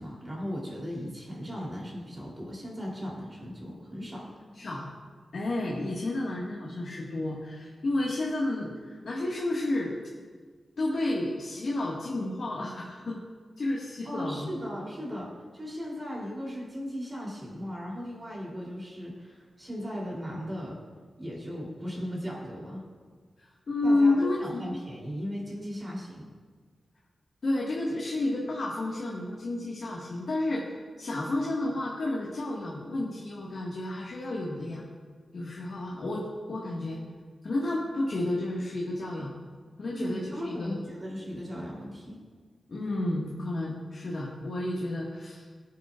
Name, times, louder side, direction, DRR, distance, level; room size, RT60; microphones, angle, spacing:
voice 1, 0.0-4.3 14.1-15.3 15.5-20.8 21.2-22.8 23.8-26.3 40.0-42.2, equal, 25° right, -5 dB, 3.4 m, -37 dB
voice 2, 4.5-4.9 5.3-9.9 10.8-13.2 13.6-14.5 23.4-24.8 27.4-30.7 31.0-34.9 35.3-37.0 37.4-39.3 39.8-40.8 42.7-45.4, left 2 dB, 60° left, -5 dB, 1.9 m, -31 dB
18.5 x 9.4 x 2.6 m, 1.6 s
wide cardioid pair, 105°, 0 cm